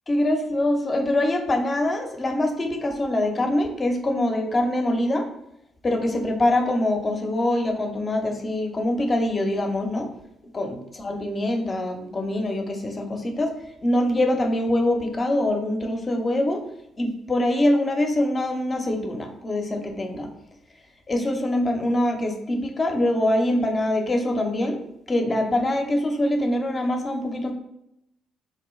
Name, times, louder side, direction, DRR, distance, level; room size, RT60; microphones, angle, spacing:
voice 1, 0.1-5.3 5.8-10.1 10.5-13.6 13.8-16.6 17.0-20.3 21.1-24.8 25.1-27.5, left 1 dB, 35° left, 4 dB, 0.7 m, -24 dB
4.1 x 2.2 x 3.1 m, 0.80 s
hypercardioid pair, 50°, 0 cm